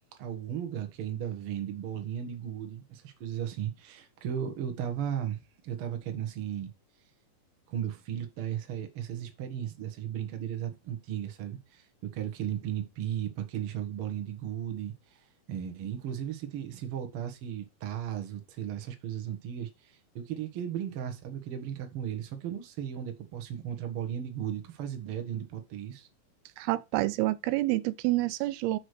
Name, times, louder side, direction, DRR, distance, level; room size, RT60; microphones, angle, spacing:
voice 1, 0.2-6.7 7.7-14.9 15.5-26.1, right 10 dB, 60° right, 1.5 m, -36 dB
voice 2, 26.6-28.8, right 18 dB, 85° right, 2.5 m, -28 dB
6.3 x 4.8 x 6.5 m
omnidirectional pair, 4.4 m